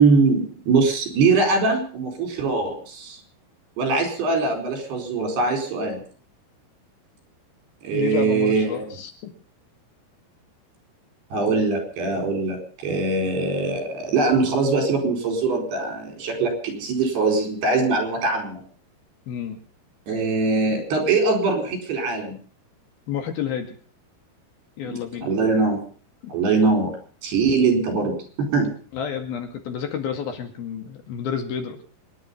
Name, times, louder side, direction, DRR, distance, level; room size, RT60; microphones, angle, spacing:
voice 1, 0.0-3.2 3.8-6.0 7.8-8.9 11.3-18.6 20.1-22.4 24.8-25.8 26.3-27.0 27.2-28.7, right 4 dB, 80° right, 4 dB, 6.4 m, -22 dB
voice 2, 7.9-9.3 19.3-19.6 23.1-23.7 24.8-25.3 26.2-26.3 28.9-31.8, left 8 dB, 70° left, 5 dB, 3.9 m, -30 dB
25.0 x 10.5 x 5.5 m, 0.43 s
omnidirectional pair, 4.6 m